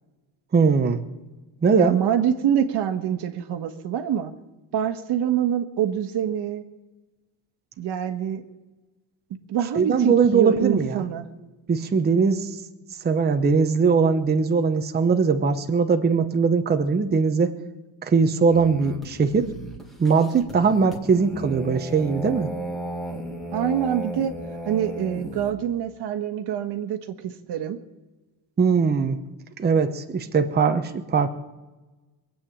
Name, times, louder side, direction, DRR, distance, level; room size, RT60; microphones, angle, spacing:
voice 1, 0.5-1.0 1.6-2.0 9.7-11.0 11.7-12.6 13.0-17.5 18.0-19.5 20.0-22.5 28.6-29.2 29.6-31.3, right 5 dB, 20° right, 6 dB, 0.9 m, -20 dB
voice 2, 1.8-4.3 4.7-6.6 7.8-8.4 9.5-11.3 23.5-24.4 24.7-27.8, right 9 dB, 60° right, 7 dB, 1.5 m, -25 dB
sound 1, 18.5-25.5, equal, ahead, 2.1 m, -35 dB
22.0 x 8.9 x 7.4 m, 1.2 s
cardioid pair, 135°, 45 cm